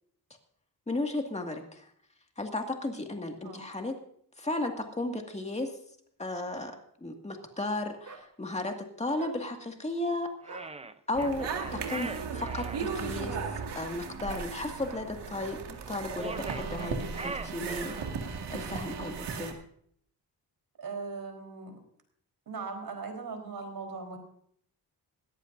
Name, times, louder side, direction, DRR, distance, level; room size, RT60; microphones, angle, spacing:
voice 1, 0.9-1.9 2.4-4.0 4.4-5.8 6.2-10.7 11.1-19.6, left 2 dB, 15° left, 3 dB, 2.1 m, -35 dB
sound 1, 8.0-8.3 9.2-9.4 10.4-10.7 11.8-12.0 12.8-13.0 13.7-13.9 14.8-15.1 15.3-15.6 15.9-16.1, right 4 dB, 45° right, 3.1 m, -45 dB
sound 2, 10.4-12.9 16.1-18.2, right 3 dB, 15° right, 0.6 m, -41 dB
sound 3, 11.1-19.5, right 5 dB, 90° right, 2.2 m, -36 dB
voice 2, 20.8-21.8 22.5-24.2, right 4 dB, 65° right, 4 dB, 4.2 m, -39 dB
20.0 x 14.5 x 2.7 m, 0.65 s
cardioid pair, 100°, 39 cm